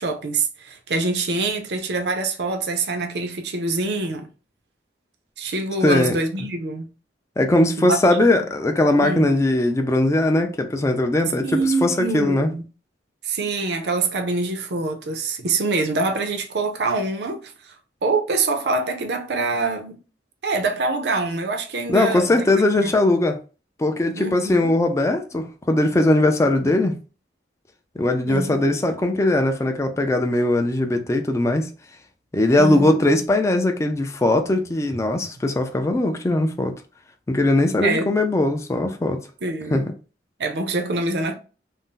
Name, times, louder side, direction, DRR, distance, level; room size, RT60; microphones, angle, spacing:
voice 1, 0.0-4.3 5.4-6.9 7.8-8.0 9.0-9.3 11.4-12.6 13.2-17.7 18.0-20.0 20.4-22.4 22.8-22.9 24.2-24.7 28.3-28.7 32.6-33.0 37.8-38.1 39.4-39.8 40.4-41.3, right 3 dB, 65° right, 0.5 m, -25 dB
voice 2, 5.8-6.2 7.4-12.5 21.9-23.4 23.8-27.0 28.0-31.7 32.3-36.7 37.3-39.2 39.7-39.8, left 1 dB, 15° left, 0.3 m, -20 dB
2.5 x 2.0 x 3.7 m
head